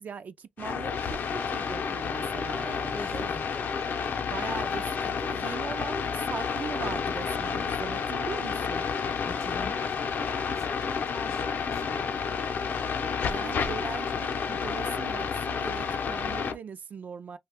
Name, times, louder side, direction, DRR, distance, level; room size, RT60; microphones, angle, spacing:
voice 1, 0.0-3.3 4.2-8.9 13.3-17.4, right 6 dB, 60° right, 0.3 m, -40 dB
sound 1, 0.6-16.5, left 6 dB, 80° left, 0.5 m, -30 dB
voice 2, 2.9-4.3 9.3-12.5, left 2 dB, 20° left, 0.4 m, -44 dB
2.5 x 2.2 x 3.3 m
wide cardioid pair, 105°, 3 cm